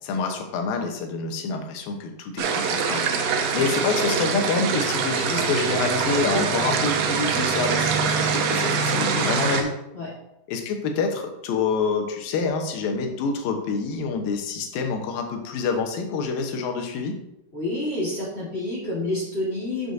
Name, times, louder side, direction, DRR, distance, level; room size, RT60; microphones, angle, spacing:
voice 1, 0.0-9.7 10.5-17.1, left 4 dB, 75° left, 4 dB, 2.7 m, -27 dB
sound 1, 2.4-9.6, right 5 dB, 75° right, 2.4 m, -24 dB
voice 2, 17.5-19.9, left 1 dB, 45° left, -6 dB, 0.8 m, -28 dB
11.5 x 6.3 x 2.7 m, 0.87 s
omnidirectional pair, 4.4 m